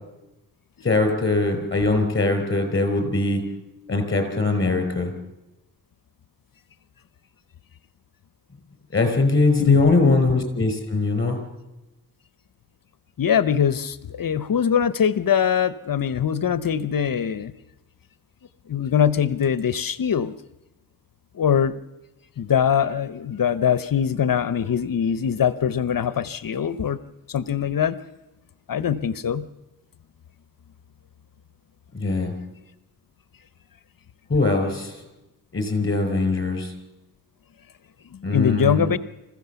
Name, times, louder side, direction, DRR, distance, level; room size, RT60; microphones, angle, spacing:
voice 1, 0.8-3.4 3.9-5.1 8.9-11.4 31.9-32.3 34.3-34.9 35.5-36.7 38.2-38.9, left 3 dB, 30° left, 6 dB, 4.9 m, -21 dB
voice 2, 9.6-10.1 13.2-17.5 18.7-20.3 21.3-21.7 22.4-27.0 27.3-28.0 28.7-29.5 38.1-39.0, left 8 dB, 60° left, 15 dB, 0.8 m, -22 dB
27.0 x 15.0 x 6.9 m, 0.99 s
cardioid pair, 80°, 38 cm